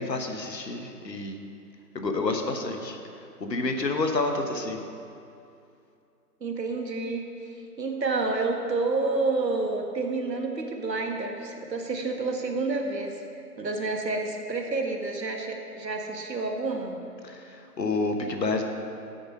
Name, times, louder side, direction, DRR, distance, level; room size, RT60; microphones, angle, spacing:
voice 1, 0.0-1.4 1.9-3.0 3.4-4.8 17.2-17.4 17.8-18.6, left 3 dB, 90° left, 4 dB, 1.3 m, -28 dB
voice 2, 6.4-13.1 13.6-17.0, right 3 dB, 90° right, 2 dB, 1.6 m, -29 dB
8.1 x 8.1 x 5.4 m, 2.6 s
figure-of-eight pair, 150°, 49 cm